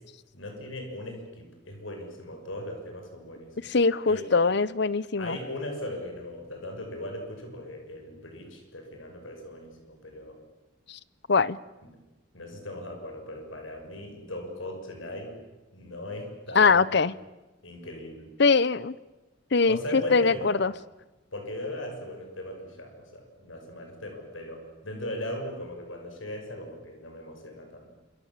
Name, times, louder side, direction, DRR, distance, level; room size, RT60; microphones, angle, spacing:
voice 1, 0.3-3.8 4.1-4.3 5.2-10.4 11.8-11.9 12.3-15.4 15.7-16.9 17.6-18.3 19.7-20.6 21.3-27.9, left 1 dB, 85° left, 3 dB, 6.2 m, -38 dB
voice 2, 3.6-5.4 10.9-11.0 11.3-11.6 16.5-17.1 18.4-18.9 19.5-20.7, left 4 dB, 60° left, 19 dB, 0.8 m, -22 dB
28.0 x 26.5 x 7.4 m, 1.1 s
head